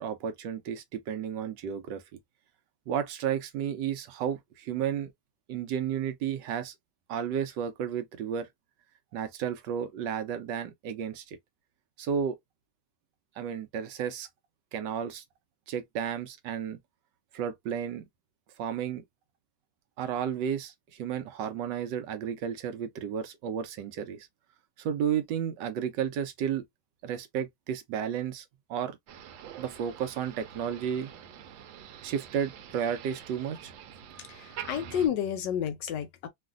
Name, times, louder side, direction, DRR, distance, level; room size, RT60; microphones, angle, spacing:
voice 1, 0.0-2.2 2.9-5.1 5.5-6.7 7.1-8.5 9.1-11.4 12.0-12.4 13.4-14.3 14.7-15.2 15.7-16.8 17.3-18.0 18.6-19.0 20.0-24.3 24.8-26.6 27.0-28.4 28.7-29.0 29.6-31.1 32.0-33.7, right 8 dB, 75° right, 1.2 m, -32 dB
Motor vehicle (road), 29.1-35.1, right 9 dB, 90° right, 1.4 m, -46 dB
voice 2, 34.3-36.3, left 9 dB, 70° left, 1.2 m, -31 dB
3.1 x 2.5 x 2.4 m
omnidirectional pair, 2.1 m